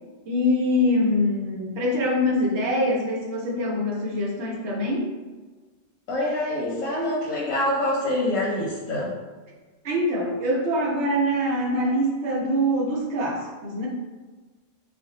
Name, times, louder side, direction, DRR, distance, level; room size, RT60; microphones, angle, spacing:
voice 1, 0.3-5.1 9.8-13.9, left 1 dB, 65° right, -2 dB, 0.9 m, -24 dB
voice 2, 6.1-9.1, left 1 dB, 85° left, -5 dB, 1.0 m, -25 dB
2.5 x 2.3 x 3.8 m, 1.3 s
omnidirectional pair, 1.3 m